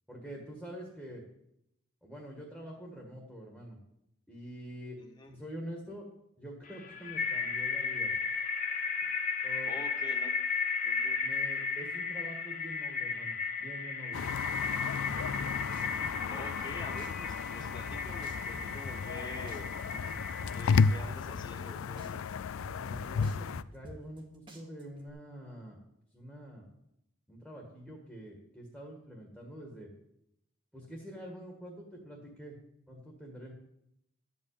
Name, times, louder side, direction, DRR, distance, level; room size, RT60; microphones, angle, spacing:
voice 1, 0.1-1.2 2.0-3.8 4.3-5.0 5.2-6.1 6.4-8.1 9.4-9.7 11.2-14.2 22.7-25.8 26.1-26.7 27.3-29.9 30.7-32.6 32.9-33.5, equal, ahead, -1 dB, 1.7 m, -46 dB
voice 2, 5.0-5.3 9.6-10.4 10.8-11.2 16.3-19.7 20.5-22.2, left 2 dB, 20° left, 2 dB, 1.4 m, -46 dB
sound 1, 6.7-21.0, left 5 dB, 35° left, 1.3 m, -35 dB
sound 2, 14.1-23.6, left 5 dB, 80° left, 0.4 m, -33 dB
sound 3, 15.1-16.7 17.0-19.2 19.5-21.7 22.0-24.2 24.5-25.1, equal, 25° right, 1.6 m, -48 dB
12.5 x 5.4 x 8.4 m, 0.80 s
head